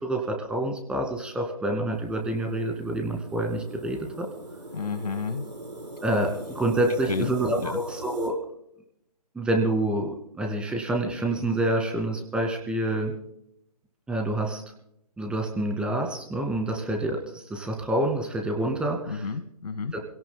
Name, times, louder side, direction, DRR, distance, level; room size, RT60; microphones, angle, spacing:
voice 1, 0.0-4.3 6.0-8.4 9.3-13.1 14.1-14.6 15.2-19.3 19.9-20.0, right 1 dB, 5° right, 2 dB, 2.0 m, -27 dB
sound 1, 1.9-8.3, right 1 dB, 90° right, 3.8 m, -41 dB
voice 2, 4.7-5.5 7.0-7.3 7.6-7.8 19.1-19.9, left 5 dB, 65° left, 11 dB, 1.1 m, -31 dB
27.5 x 17.5 x 2.2 m, 0.77 s
figure-of-eight pair, 140°, 21 cm